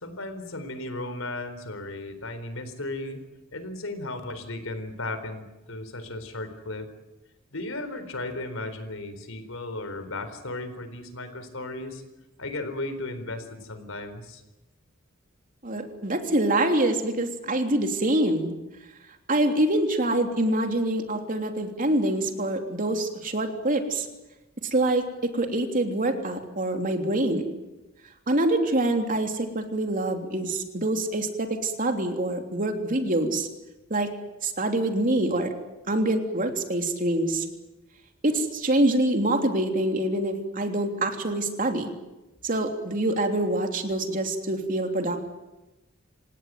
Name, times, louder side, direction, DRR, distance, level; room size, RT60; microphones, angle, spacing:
voice 1, 0.0-3.2 3.5-6.9 7.5-12.0 12.4-14.4, left 2 dB, 85° left, 11 dB, 4.0 m, -35 dB
voice 2, 15.6-18.5 19.3-24.1 24.7-27.5 28.3-33.5 33.9-34.1 34.4-35.5 35.9-37.4 38.2-41.9 42.4-45.3, right 1 dB, 40° right, 4 dB, 3.3 m, -25 dB
27.5 x 17.5 x 9.3 m, 1.0 s
head